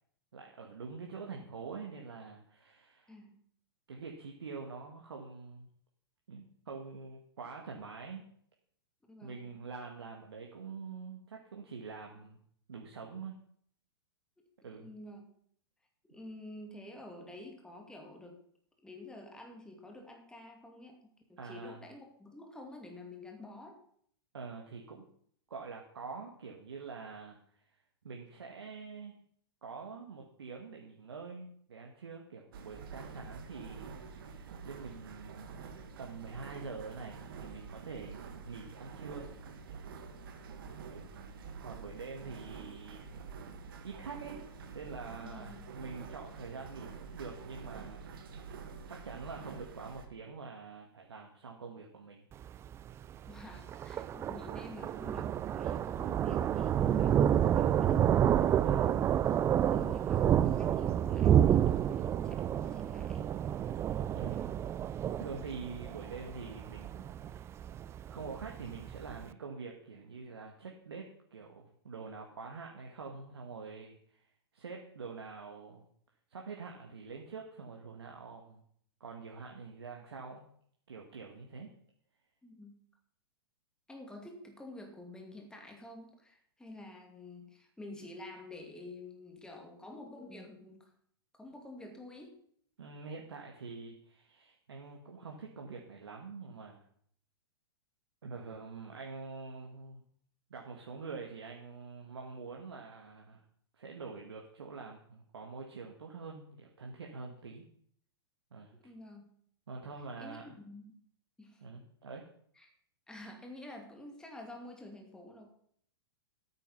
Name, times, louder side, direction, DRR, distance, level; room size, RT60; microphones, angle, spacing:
voice 1, 0.3-3.1 3.9-5.7 6.3-8.3 9.2-12.4 12.7-13.4 14.6-14.9 21.4-21.8 24.3-25.1 25.5-27.4 28.0-29.1 29.6-34.4 34.6-35.6 36.0-39.3 40.9-41.1 41.6-43.2 43.8-44.4 44.7-48.2 48.9-52.3 58.6-59.1 64.1-64.6 65.2-67.6 68.1-74.3 74.5-75.9 76.3-78.6 79.0-80.5 80.9-81.7 92.8-96.9 98.2-100.0 100.5-103.4 103.7-107.6 108.5-108.8 109.7-110.6 111.6-112.2, right 4 dB, 80° right, 1 dB, 1.9 m, -45 dB
voice 2, 3.1-3.4 9.1-9.5 14.4-15.3 16.1-18.4 18.8-23.8 45.2-45.7 53.3-58.1 59.6-63.3 82.4-82.8 83.9-90.9 91.3-92.4 108.8-109.3 110.2-111.0 111.4-111.6 112.6-112.7 113.1-115.5, left 2 dB, 5° left, 3 dB, 2.5 m, -49 dB
sound 1, 32.5-50.1, right 5 dB, 60° right, 2.1 m, -47 dB
Thunder, 52.3-69.2, right 10 dB, 20° right, 0.4 m, -29 dB
12.5 x 9.0 x 5.5 m, 0.64 s
hypercardioid pair, 110°, 13 cm